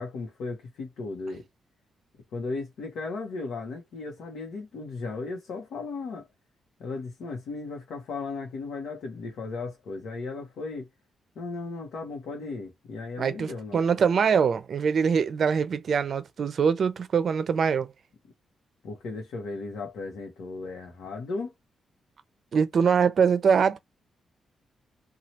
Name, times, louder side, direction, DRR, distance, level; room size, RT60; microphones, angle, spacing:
voice 1, 0.0-1.5 2.3-6.3 6.8-10.9 11.4-13.8 18.8-21.5, left 3 dB, 80° left, 0.9 m, -36 dB
voice 2, 13.2-17.9 22.5-23.8, right 6 dB, 50° right, 0.5 m, -23 dB
3.1 x 2.3 x 2.8 m
cardioid pair, 125°, 0 cm